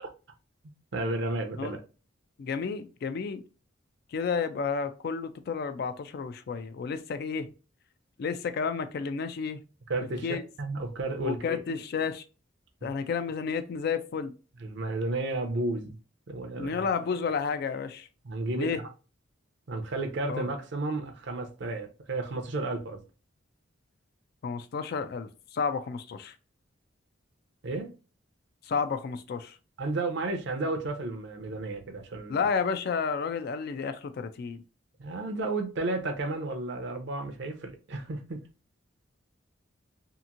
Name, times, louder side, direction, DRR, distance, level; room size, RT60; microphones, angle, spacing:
voice 1, 0.9-1.8 9.9-11.6 12.8-12.9 14.6-16.0 16.3-16.9 18.2-18.9 19.7-23.0 27.6-27.9 29.8-32.4 35.0-38.4, right 2 dB, 60° right, 0.5 m, -32 dB
voice 2, 2.4-3.4 4.1-7.5 8.2-9.6 10.2-10.5 11.2-12.2 12.8-14.3 16.6-18.1 18.6-18.8 20.3-20.4 24.4-26.3 28.6-29.6 32.3-34.6, left 5 dB, 50° left, 0.3 m, -31 dB
2.9 x 2.5 x 2.4 m
head